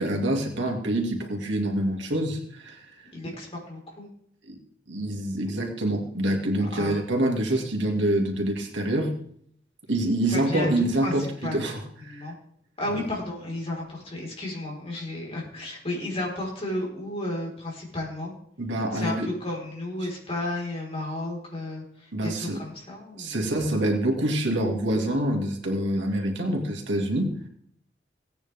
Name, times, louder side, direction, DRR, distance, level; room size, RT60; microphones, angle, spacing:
voice 1, 0.0-2.9 4.5-4.6 4.9-9.1 9.9-12.3 18.6-19.3 22.1-22.6 23.2-27.4, right 1 dB, 80° right, 1 dB, 2.5 m, -26 dB
voice 2, 3.1-4.1 6.7-7.0 10.3-11.7 12.0-12.3 12.8-18.3 18.9-23.4, left 1 dB, 35° left, -2 dB, 4.6 m, -33 dB
17.5 x 9.4 x 3.6 m, 0.67 s
head